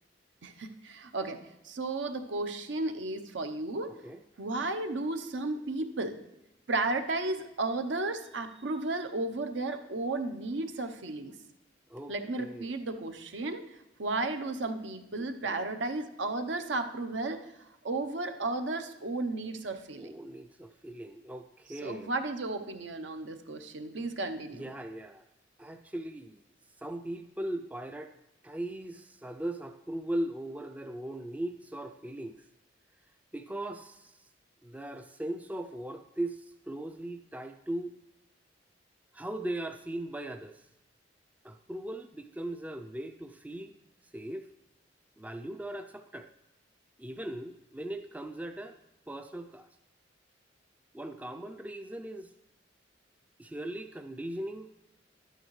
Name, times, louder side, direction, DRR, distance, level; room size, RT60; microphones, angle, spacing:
voice 1, 0.4-3.9 4.4-6.2 6.7-11.4 12.1-13.6 14.0-20.1 21.8-24.6, right 2 dB, 75° right, 7 dB, 0.7 m, -34 dB
voice 2, 3.9-4.2 11.9-12.8 15.4-15.7 20.0-22.1 24.5-25.2 25.6-26.4 26.8-28.1 28.4-32.4 33.3-34.3 34.6-37.9 39.1-40.7 41.4-43.8 44.1-44.5 45.2-46.3 47.0-48.8 49.1-49.7 50.9-52.3 53.4-54.7, right 1 dB, 10° right, 7 dB, 0.3 m, -39 dB
11.5 x 9.0 x 3.1 m, 0.93 s
head